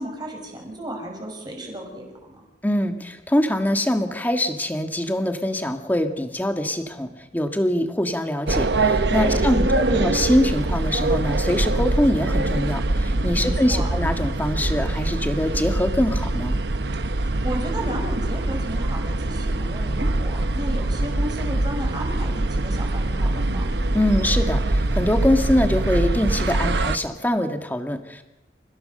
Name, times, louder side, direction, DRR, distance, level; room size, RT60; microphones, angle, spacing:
voice 1, 0.0-2.4 9.1-10.0 13.4-13.9 17.0-23.7, right 1 dB, 25° right, 1 dB, 6.2 m, -34 dB
voice 2, 2.6-16.6 23.9-28.2, left 1 dB, 10° left, 5 dB, 1.8 m, -23 dB
sound 1, 8.5-27.0, right 2 dB, 70° right, 1.0 m, -23 dB
29.5 x 16.5 x 6.7 m, 1.0 s
head